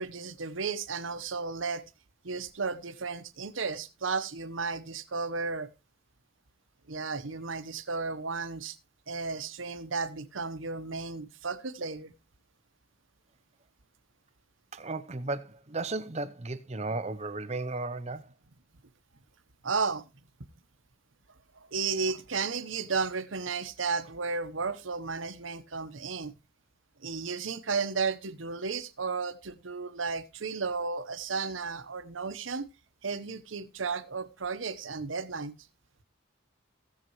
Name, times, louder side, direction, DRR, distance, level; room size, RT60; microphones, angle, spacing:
voice 1, 0.0-1.9 2.2-5.7 6.9-8.8 9.1-12.1 19.6-20.0 21.6-26.3 27.0-32.7 33.0-35.5, right 4 dB, 85° right, 1.0 m, -33 dB
voice 2, 14.7-18.3, right 3 dB, 35° right, 0.7 m, -35 dB
16.5 x 7.6 x 3.1 m
head